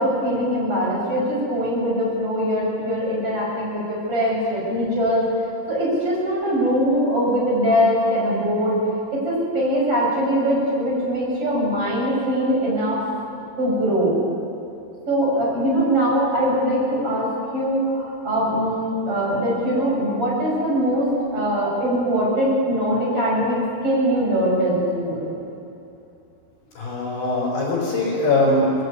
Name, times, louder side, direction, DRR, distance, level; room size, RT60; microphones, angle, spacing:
voice 1, 0.0-5.2 5.7-8.8 9.1-13.0 13.6-14.1 15.1-17.3 17.5-23.6 23.8-25.3, equal, 35° right, -4 dB, 7.4 m, -22 dB
voice 2, 26.8-28.8, left 2 dB, 65° left, -7 dB, 6.5 m, -21 dB
20.0 x 16.5 x 9.6 m, 2.8 s
omnidirectional pair, 4.5 m